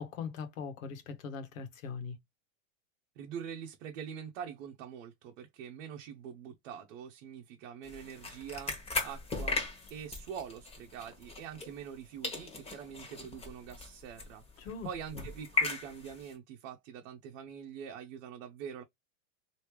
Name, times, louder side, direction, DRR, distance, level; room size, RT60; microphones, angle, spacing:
voice 1, 0.0-2.1 14.6-14.9 15.1-15.2, left 5 dB, 80° left, 1.2 m, -40 dB
voice 2, 3.2-8.7 9.0-18.8, right 8 dB, 65° right, 0.8 m, -44 dB
sound 1, 7.8-12.0 12.2-16.3, left 3 dB, 15° left, 1.3 m, -38 dB
3.1 x 2.8 x 3.2 m
supercardioid pair, 130°, 40 cm